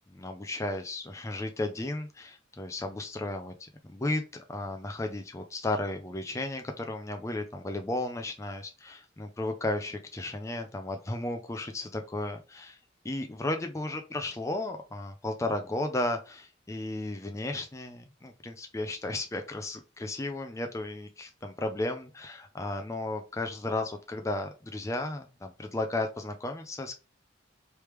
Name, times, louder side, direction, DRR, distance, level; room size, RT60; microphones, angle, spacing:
voice 1, 0.1-12.8 13.0-27.0, left 2 dB, 15° left, 5 dB, 0.4 m, -34 dB
3.3 x 3.3 x 3.0 m, 0.32 s
head